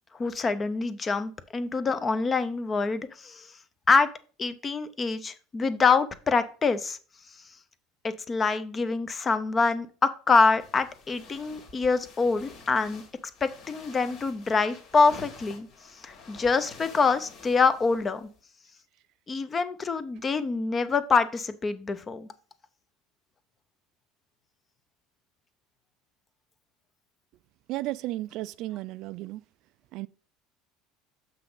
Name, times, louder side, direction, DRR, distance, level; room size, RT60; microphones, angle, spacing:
voice 1, 0.2-3.5 3.9-4.1 4.4-7.0 8.0-13.0 13.4-15.7 16.0-18.3 19.3-22.3, left 4 dB, 25° left, 0.7 m, -25 dB
sound 1, 10.6-18.4, left 4 dB, 55° left, 2.4 m, -49 dB
voice 2, 27.7-29.4 29.9-30.1, right 17 dB, 60° right, 0.3 m, -34 dB
6.8 x 5.8 x 3.9 m
cardioid pair, 130°, 0 cm